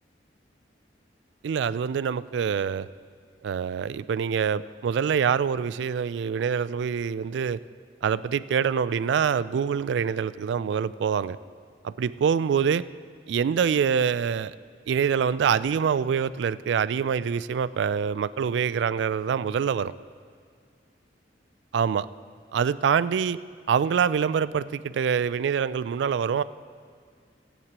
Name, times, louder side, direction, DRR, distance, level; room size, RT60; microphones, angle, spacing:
voice 1, 1.4-2.9 3.4-7.6 8.0-11.4 11.8-12.8 13.3-14.6 14.9-19.9 21.7-22.1 22.5-23.4 23.7-26.4, right 7 dB, 75° right, 17 dB, 0.3 m, -25 dB
23.5 x 8.1 x 2.9 m, 2.1 s
head